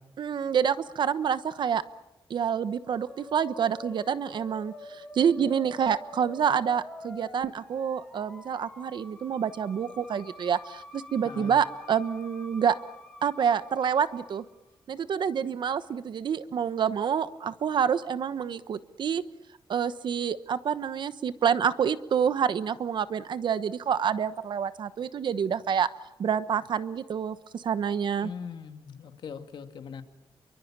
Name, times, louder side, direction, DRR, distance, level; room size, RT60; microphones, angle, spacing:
voice 1, 0.2-1.8 2.3-12.8 13.2-14.4 14.9-19.2 19.7-25.9 26.2-28.3, right 7 dB, 65° right, 13 dB, 1.0 m, -27 dB
Musical instrument, 2.8-14.6, left 1 dB, 5° left, 3.7 m, -47 dB
voice 2, 11.2-11.6 28.2-30.0, left 7 dB, 70° left, 6 dB, 2.3 m, -40 dB
28.0 x 23.5 x 7.4 m, 0.93 s
wide cardioid pair, 145°, 9 cm